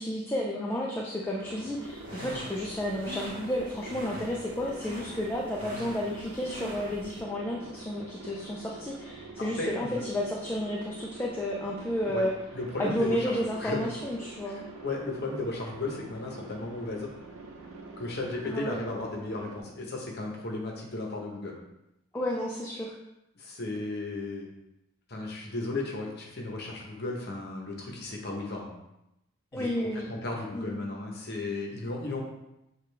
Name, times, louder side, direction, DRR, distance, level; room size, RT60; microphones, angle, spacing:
voice 1, 0.0-12.3 12.8-14.6 18.4-18.8 22.1-23.0 29.5-30.1 30.5-30.7, left 1 dB, 10° left, -3 dB, 0.3 m, -32 dB
Aircraft, 1.3-19.6, right 2 dB, 85° right, 0.7 m, -46 dB
sound 1, 1.8-7.2, equal, 40° right, 0.8 m, -43 dB
voice 2, 9.4-10.0 12.0-12.2 12.5-13.9 14.5-17.1 18.0-21.6 23.4-24.5 25.1-28.7 29.5-32.2, left 2 dB, 50° left, 0 dB, 0.9 m, -35 dB
6.5 x 2.4 x 3.3 m, 0.88 s
head